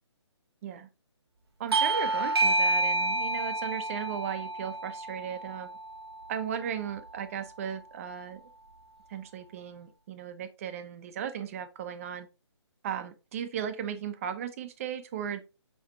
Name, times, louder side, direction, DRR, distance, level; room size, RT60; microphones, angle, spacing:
voice 1, 1.6-5.7 6.3-8.4 9.1-12.3 12.8-15.4, right 8 dB, 30° right, 11 dB, 0.9 m, -36 dB
Bell / Doorbell, 1.7-6.8, right 2 dB, 60° right, 1.1 m, -29 dB
6.1 x 6.1 x 3.6 m, 0.30 s
figure-of-eight pair, 145°, 15 cm